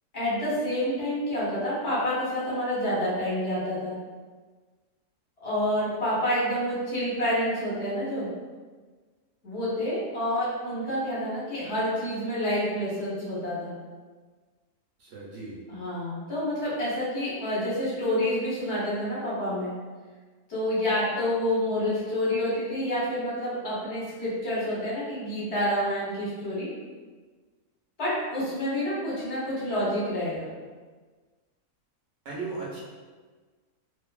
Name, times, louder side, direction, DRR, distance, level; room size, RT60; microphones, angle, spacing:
voice 1, 0.1-3.9 5.4-8.3 9.4-13.7 15.7-19.7 20.5-26.7 28.0-30.5, left 1 dB, 50° left, -8 dB, 1.0 m, -28 dB
voice 2, 15.0-15.6 32.2-32.8, right 3 dB, 70° right, -5 dB, 0.8 m, -36 dB
2.6 x 2.4 x 2.2 m, 1.4 s
omnidirectional pair, 1.6 m